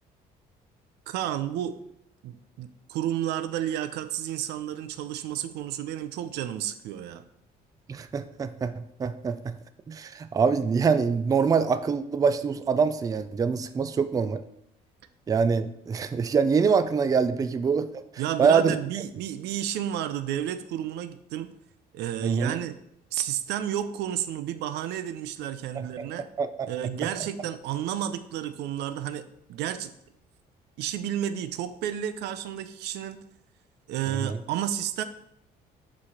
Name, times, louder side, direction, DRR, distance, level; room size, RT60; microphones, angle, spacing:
voice 1, 1.1-1.8 2.2-7.2 18.2-21.5 21.9-22.8 23.1-26.3 26.7-29.9 30.8-33.2 33.9-35.0, right 11 dB, 85° right, 11 dB, 0.5 m, -31 dB
voice 2, 7.9-9.4 9.9-14.4 15.3-17.9 18.4-18.8 22.2-22.6 25.8-26.1 26.4-26.7 34.2-34.4, right 5 dB, 20° right, 12 dB, 0.4 m, -24 dB
6.1 x 3.2 x 5.7 m, 0.75 s
cardioid pair, 110°, 17 cm